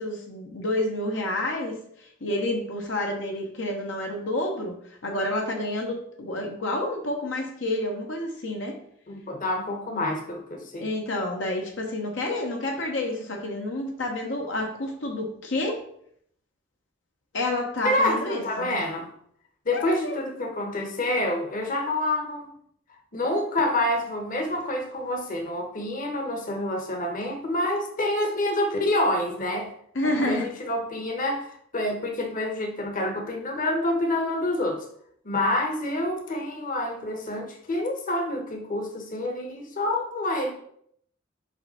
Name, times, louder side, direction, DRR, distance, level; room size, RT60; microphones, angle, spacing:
voice 1, 0.0-1.8 2.2-4.7 5.0-8.8 10.8-15.8 17.3-18.8 19.7-20.1 29.9-30.5, left 1 dB, 70° left, 1 dB, 1.0 m, -29 dB
voice 2, 9.1-10.9 17.8-19.1 19.6-22.5 23.1-29.7 30.3-34.8 35.2-40.5, left 1 dB, 45° left, 2 dB, 1.1 m, -27 dB
5.6 x 3.3 x 5.6 m, 0.67 s
head